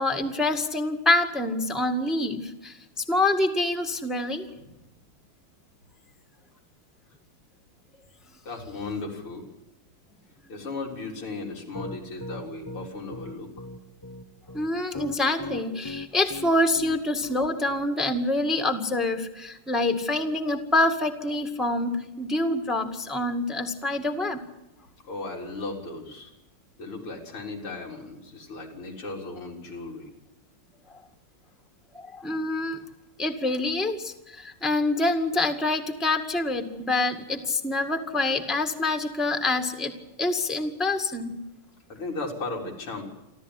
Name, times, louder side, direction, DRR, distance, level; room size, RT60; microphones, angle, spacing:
voice 1, 0.0-4.4 14.5-24.4 31.9-32.8 33.2-41.4, left 2 dB, ahead, 7 dB, 1.8 m, -26 dB
voice 2, 8.4-9.5 10.5-13.7 25.0-26.3 26.8-30.1 41.9-43.0, left 3 dB, 85° left, 0 dB, 5.0 m, -36 dB
Piano, 11.7-18.2, left 2 dB, 15° left, 0.7 m, -38 dB
29.0 x 13.0 x 9.9 m, 0.94 s
omnidirectional pair, 2.3 m